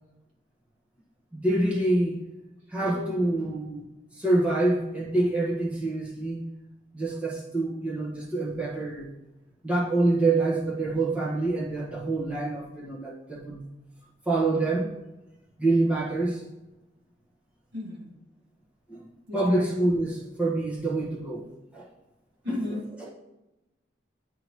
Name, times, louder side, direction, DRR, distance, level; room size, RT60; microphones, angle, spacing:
voice 1, 1.3-2.1 2.7-3.8 4.1-6.4 6.9-9.1 9.6-13.6 14.2-14.9 15.6-16.4 18.9-21.5 21.7-21.9 22.5-23.1, right 2 dB, 5° right, -6 dB, 1.3 m, -26 dB
voice 2, 17.7-18.1 19.3-19.7 22.4-22.8, left 2 dB, 85° right, -4 dB, 1.7 m, -35 dB
10.5 x 3.9 x 3.0 m, 1.0 s
head